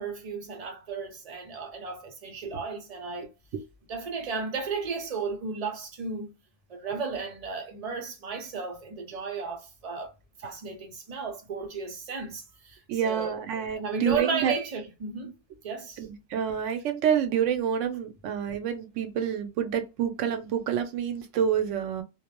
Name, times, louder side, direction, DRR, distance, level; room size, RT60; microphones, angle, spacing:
voice 1, 0.0-3.3 3.9-6.3 6.7-10.1 10.4-13.4 13.7-15.3 15.6-16.1, right 5 dB, 40° right, 0.7 m, -34 dB
voice 2, 12.9-14.5 16.0-22.0, right 8 dB, 80° right, 0.9 m, -28 dB
2.3 x 2.0 x 2.9 m
omnidirectional pair, 1.2 m